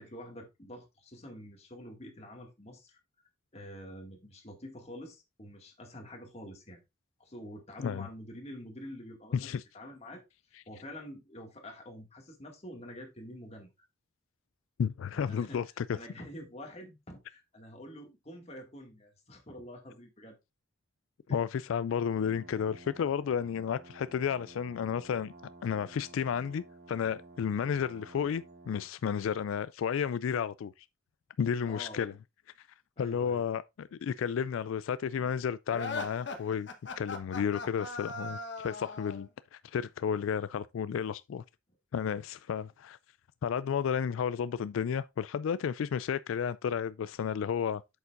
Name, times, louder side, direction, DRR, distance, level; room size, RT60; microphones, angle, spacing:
voice 1, 0.0-3.0 3.5-6.8 7.2-10.2 10.7-13.7 15.1-15.7 15.9-20.4 21.3-21.4 31.7-32.2 33.0-33.4, equal, 30° left, 2.1 m, -47 dB
voice 2, 9.3-9.6 14.8-16.0 21.3-25.3 25.6-30.9 31.4-32.1 33.0-36.7 37.0-41.4 41.9-43.0 43.4-47.8, left 7 dB, 85° left, 0.3 m, -32 dB
sound 1, 22.2-28.9, right 2 dB, 50° right, 1.8 m, -53 dB
sound 2, 35.7-39.3, left 3 dB, 60° left, 1.2 m, -39 dB
8.3 x 7.0 x 2.5 m
head